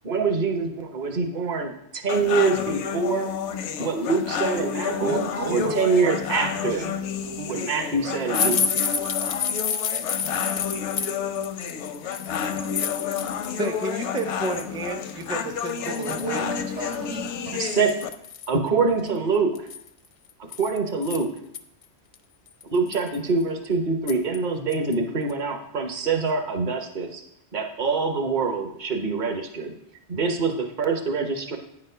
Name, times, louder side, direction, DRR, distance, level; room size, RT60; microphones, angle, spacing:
voice 1, 0.0-3.3 3.8-5.2 5.5-6.8 7.5-8.6 17.5-17.9 18.5-19.7 20.4-21.3 22.7-27.2 27.5-29.7 30.1-31.6, right 4 dB, 45° right, 4 dB, 1.0 m, -25 dB
sound 1, 2.1-18.1, left 8 dB, 80° left, 0.9 m, -30 dB
voice 2, 5.0-6.1 6.4-6.9 7.3-7.8 8.1-8.3 15.9-17.6 19.1-19.3, right 4 dB, 90° right, 1 dB, 1.4 m, -35 dB
sound 2, 8.3-13.7 14.0-14.6 15.2-15.3 15.7-16.4 16.9-17.0 17.3-17.4 17.9-18.5 19.5-21.6 22.1-22.2 22.6-23.2 24.1-24.4 24.7-24.9 25.3-25.4, left 6 dB, 55° left, 0.5 m, -29 dB
voice 3, 13.4-16.5, right 2 dB, 5° right, 5 dB, 0.4 m, -31 dB
9.1 x 4.3 x 5.5 m, 0.77 s
omnidirectional pair, 1.2 m